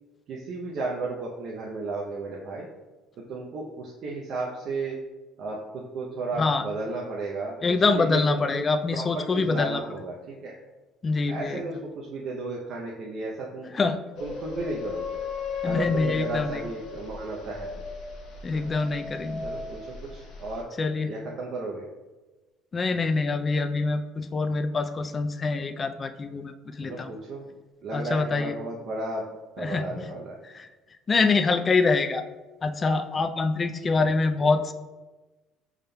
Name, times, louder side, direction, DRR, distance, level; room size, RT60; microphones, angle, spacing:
voice 1, 0.3-2.7 3.3-5.0 5.4-10.5 11.3-13.7 14.2-15.1 15.6-17.8 18.5-18.6 19.4-20.7 21.1-21.8 26.8-27.5 27.8-30.4 34.4-34.5, right 2 dB, 60° right, -3 dB, 0.6 m, -34 dB
voice 2, 7.6-9.8 11.0-11.6 13.7-14.0 15.6-16.6 18.4-19.4 20.8-21.1 22.7-27.1 27.9-28.6 29.6-30.0 30.5-30.7 31.1-32.2 32.6-34.7, left 4 dB, 30° left, 9 dB, 0.3 m, -25 dB
sound 1, 14.1-20.6, left 5 dB, 70° left, 0.9 m, -36 dB
5.3 x 3.5 x 2.2 m, 1.2 s
supercardioid pair, 100°, 0 cm